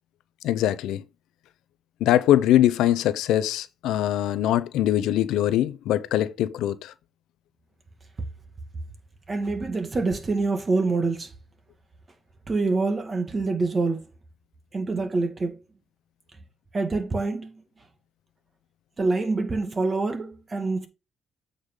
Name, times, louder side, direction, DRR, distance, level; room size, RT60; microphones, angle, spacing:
voice 1, 0.4-1.0 2.0-6.9, left 12 dB, 90° left, 0.6 m, -22 dB
voice 2, 9.3-11.3 12.5-14.0 14.7-15.6 16.7-17.6 19.0-20.9, right 3 dB, 30° right, 1.9 m, -26 dB
8.2 x 5.0 x 3.7 m
cardioid pair, 90°, 0 cm